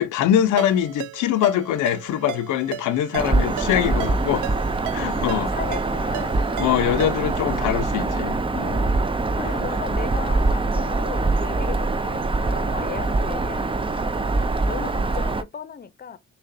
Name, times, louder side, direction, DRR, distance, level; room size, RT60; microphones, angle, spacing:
voice 1, 0.0-4.5 4.9-5.5 6.6-8.9 9.4-9.6, left 11 dB, 85° left, 0.8 m, -23 dB
Ringtone, 0.6-7.4, right 13 dB, 90° right, 0.5 m, -36 dB
Bird vocalization bird call bird song, 3.2-15.4, right 3 dB, 15° right, 0.5 m, -24 dB
voice 2, 3.7-4.3 5.0-6.6 8.0-8.3 9.3-14.1 14.6-16.2, left 7 dB, 30° left, 0.8 m, -37 dB
6.8 x 2.4 x 2.7 m
cardioid pair, 90°, 30 cm